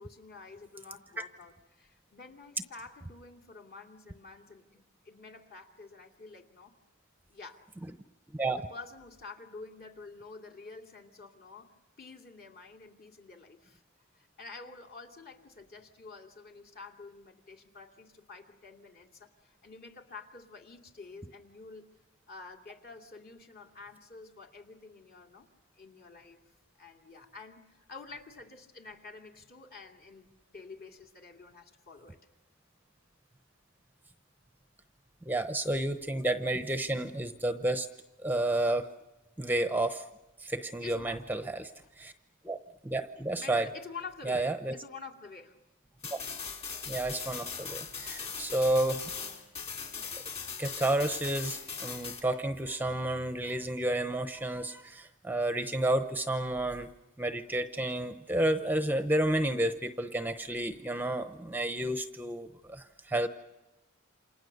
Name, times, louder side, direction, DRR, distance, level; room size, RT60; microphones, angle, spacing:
voice 1, 0.0-6.7 7.3-7.6 8.5-13.8 14.1-21.8 22.3-25.5 25.8-26.4 26.8-32.2 40.8-41.3 41.8-41.9 43.4-45.6, left 4 dB, 45° left, 3 dB, 2.7 m, -49 dB
voice 2, 8.3-8.7 35.3-37.9 38.2-38.9 39.4-40.0 40.4-41.7 42.0-42.1 42.4-42.6 42.8-43.7 44.3-44.8 46.1-46.2 46.9-49.0 50.6-56.9 57.2-63.3, right 1 dB, 10° right, 8 dB, 0.8 m, -31 dB
sound 1, 46.0-52.2, left 6 dB, 30° left, 3.3 m, -40 dB
29.0 x 27.0 x 6.7 m, 1.1 s
head